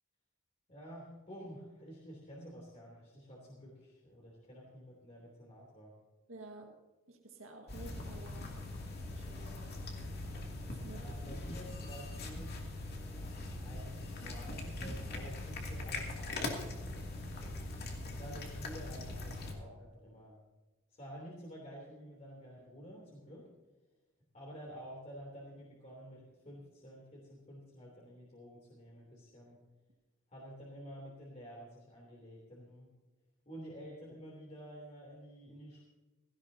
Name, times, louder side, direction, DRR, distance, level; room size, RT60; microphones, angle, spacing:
voice 1, 0.7-5.9 10.9-12.6 13.3-17.6 18.0-20.4 20.9-23.5 24.3-29.6 30.3-32.9 33.4-35.8, equal, 35° left, -3 dB, 3.3 m, -50 dB
voice 2, 6.3-8.6 9.1-9.9 10.7-11.1, right 2 dB, 80° right, 1 dB, 1.8 m, -52 dB
sound 1, 7.7-19.5, left 2 dB, 50° left, 2.5 m, -41 dB
17.0 x 17.0 x 2.8 m, 1.2 s
head